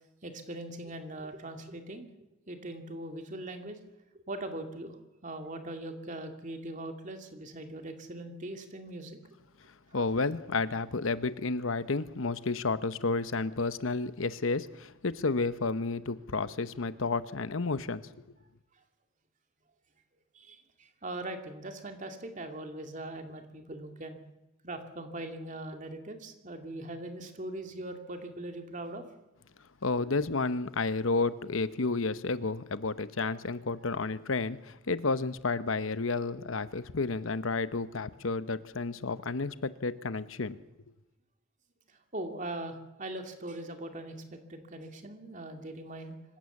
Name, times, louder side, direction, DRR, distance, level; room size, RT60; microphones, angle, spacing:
voice 1, 0.2-2.1 2.5-3.8 4.3-9.2 20.3-24.2 24.6-29.0 42.1-46.4, right 1 dB, 40° right, 5 dB, 2.5 m, -41 dB
voice 2, 9.9-18.0 29.8-40.6, left 3 dB, 75° left, 14 dB, 0.9 m, -31 dB
25.5 x 16.0 x 7.3 m, 0.99 s
head